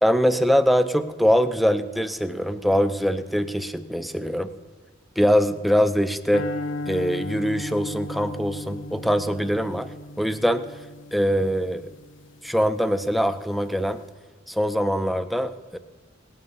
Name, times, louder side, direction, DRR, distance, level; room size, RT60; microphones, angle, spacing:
voice 1, 0.0-4.5 5.2-6.5 6.9-9.9 10.2-10.6 11.1-11.9 12.4-14.0 14.5-15.8, equal, ahead, 10 dB, 0.5 m, -23 dB
sound 1, 6.3-12.7, left 2 dB, 75° left, 0.8 m, -36 dB
18.5 x 9.5 x 5.5 m, 1.3 s
head